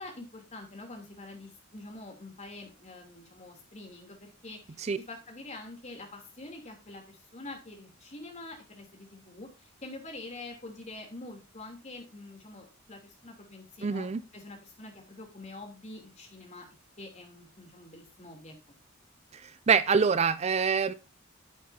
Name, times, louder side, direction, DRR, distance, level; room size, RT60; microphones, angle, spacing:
voice 1, 0.0-14.1 14.3-16.7 17.0-18.5, left 2 dB, 35° left, 3 dB, 3.1 m, -46 dB
voice 2, 13.8-14.2 19.7-20.9, right 5 dB, 35° right, 14 dB, 0.4 m, -24 dB
9.5 x 8.7 x 2.7 m, 0.30 s
head